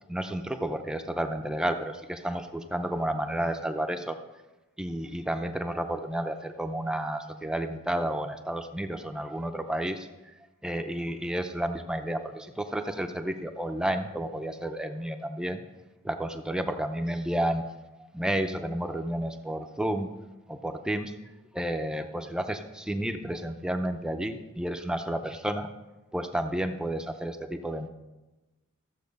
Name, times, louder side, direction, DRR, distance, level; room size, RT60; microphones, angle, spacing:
voice 1, 0.1-4.2 4.8-10.1 10.6-15.6 16.0-17.6 18.1-20.1 20.5-21.1 21.5-25.7 26.1-27.9, right 1 dB, 5° right, 6 dB, 0.6 m, -31 dB
14.5 x 7.6 x 5.3 m, 1.1 s
head